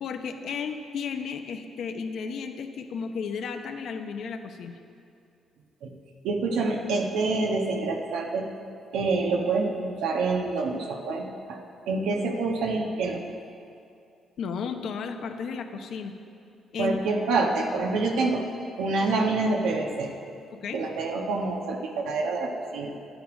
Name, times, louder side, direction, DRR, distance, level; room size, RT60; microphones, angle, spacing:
voice 1, 0.0-4.8 14.4-16.1 16.7-17.0 20.5-20.8, left 5 dB, 70° left, 5 dB, 0.9 m, -33 dB
voice 2, 6.2-8.5 8.9-11.6 11.9-13.2 16.8-18.4 18.8-20.1 20.7-22.9, right 3 dB, 90° right, 1 dB, 1.3 m, -27 dB
12.0 x 9.4 x 5.1 m, 2.5 s
cardioid pair, 90°, 0 cm